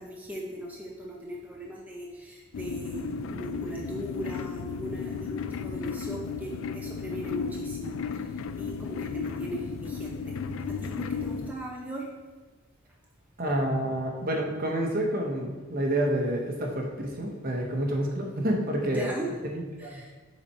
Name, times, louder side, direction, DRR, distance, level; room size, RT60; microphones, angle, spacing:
voice 1, 0.0-10.4 10.7-12.1 18.8-19.3 19.8-20.1, right 1 dB, 10° right, -2 dB, 0.7 m, -39 dB
sound 1, 2.5-11.5, left 5 dB, 65° left, 0.3 m, -34 dB
voice 2, 13.4-19.1 19.4-20.0, right 1 dB, 45° right, 1 dB, 1.0 m, -28 dB
7.2 x 4.2 x 4.4 m, 1.3 s
head